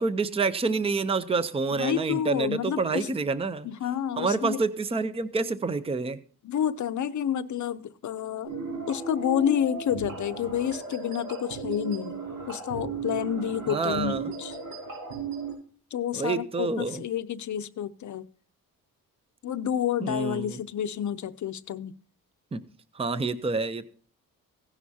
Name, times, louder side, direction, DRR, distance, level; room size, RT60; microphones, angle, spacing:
voice 1, 0.0-3.7 4.2-6.2 13.7-14.3 16.1-17.0 20.0-20.6 22.5-22.6 22.9-23.9, right 4 dB, 15° right, 0.6 m, -28 dB
voice 2, 1.8-3.1 3.6-4.6 6.4-8.5 8.9-14.6 15.9-18.3 19.4-21.9, left 9 dB, 55° left, 0.7 m, -29 dB
sound 1, 8.4-15.5, right 4 dB, 85° right, 6.2 m, -36 dB
16.5 x 11.0 x 2.8 m
wide cardioid pair, 150°, 35 cm